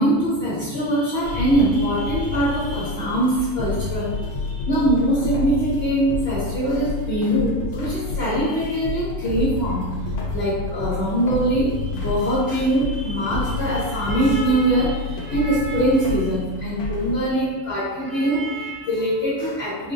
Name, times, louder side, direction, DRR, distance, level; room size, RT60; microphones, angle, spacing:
voice 1, 0.0-19.9, right 1 dB, 45° left, -10 dB, 1.1 m, -22 dB
sound 1, 1.2-17.2, left 4 dB, 90° left, 1.1 m, -30 dB
4.2 x 2.6 x 2.5 m, 1.2 s
omnidirectional pair, 1.6 m